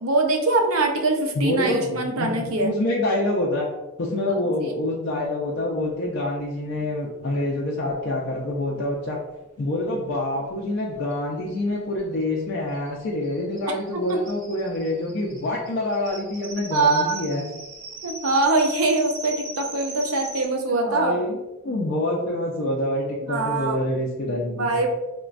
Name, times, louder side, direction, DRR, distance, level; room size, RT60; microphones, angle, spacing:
voice 1, 0.0-2.7 4.3-4.8 14.1-14.2 16.7-17.3 18.0-21.2 23.2-23.8 24.4-24.9, right 3 dB, 90° right, 2 dB, 0.6 m, -23 dB
voice 2, 1.3-3.7 4.0-9.2 9.6-17.4 20.7-21.4 21.6-24.7, left 1 dB, 55° left, -3 dB, 0.4 m, -26 dB
sound 1, 10.8-10.9 11.1-11.2 11.5-20.4, right 2 dB, 35° right, 0.6 m, -39 dB
4.0 x 2.1 x 2.4 m, 1.0 s
head